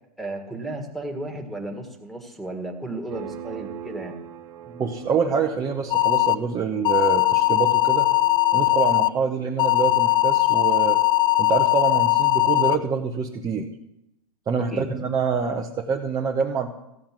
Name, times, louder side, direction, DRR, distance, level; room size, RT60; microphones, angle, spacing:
voice 1, 0.2-4.1 14.7-14.9, right 2 dB, ahead, 5 dB, 1.8 m, -34 dB
sound 1, 3.1-13.4, right 9 dB, 65° right, 1.3 m, -43 dB
voice 2, 4.7-8.1 8.5-11.0 11.4-13.7 14.5-16.7, right 5 dB, 20° right, 1 dB, 0.9 m, -26 dB
sound 2, 5.9-6.4 6.8-9.1 9.6-12.8, left 17 dB, 25° left, 0.3 m, -19 dB
15.0 x 7.3 x 6.0 m, 0.85 s
hypercardioid pair, 130°, 20 cm